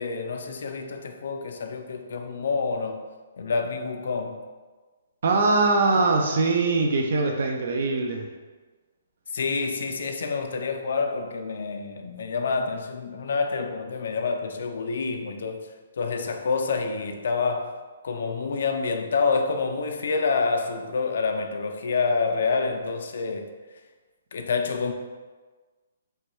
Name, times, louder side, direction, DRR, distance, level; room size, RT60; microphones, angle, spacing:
voice 1, 0.0-3.0 3.4-4.4 9.3-15.7 16.0-17.7 18.0-23.5 24.3-24.9, left 4 dB, 70° left, 5 dB, 0.3 m, -27 dB
voice 2, 5.2-8.3, right 3 dB, 60° right, 2 dB, 0.3 m, -22 dB
3.1 x 2.2 x 3.0 m, 1.3 s
hypercardioid pair, 150°, 0 cm